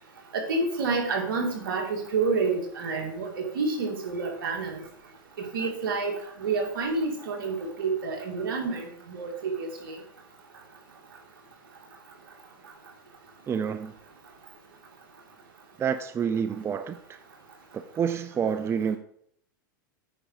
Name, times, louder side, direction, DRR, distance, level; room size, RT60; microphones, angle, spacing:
voice 1, 0.3-4.8 5.5-10.0, right 4 dB, 80° right, 2 dB, 2.3 m, -29 dB
voice 2, 13.5-13.9 15.8-17.2 17.7-19.0, right 7 dB, 25° right, 11 dB, 0.5 m, -28 dB
9.1 x 5.4 x 4.7 m, 0.66 s
hypercardioid pair, 110°, 11 cm